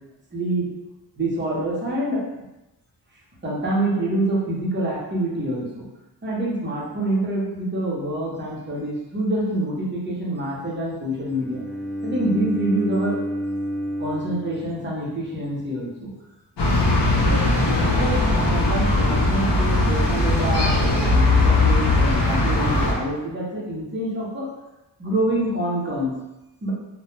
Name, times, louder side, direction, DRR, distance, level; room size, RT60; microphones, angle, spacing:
voice 1, 0.3-0.7 1.2-2.2 3.4-5.9 6.2-11.6 12.0-13.2 14.0-16.1 18.0-18.2 18.5-24.5 25.0-26.1 26.6-26.7, right 1 dB, 25° right, -5 dB, 0.7 m, -26 dB
Bowed string instrument, 11.3-15.4, equal, 25° left, 0.6 m, -30 dB
sound 1, 16.6-22.9, left 2 dB, 75° left, 0.7 m, -19 dB
2.1 x 2.1 x 3.0 m, 0.98 s
wide cardioid pair, 145°, 42 cm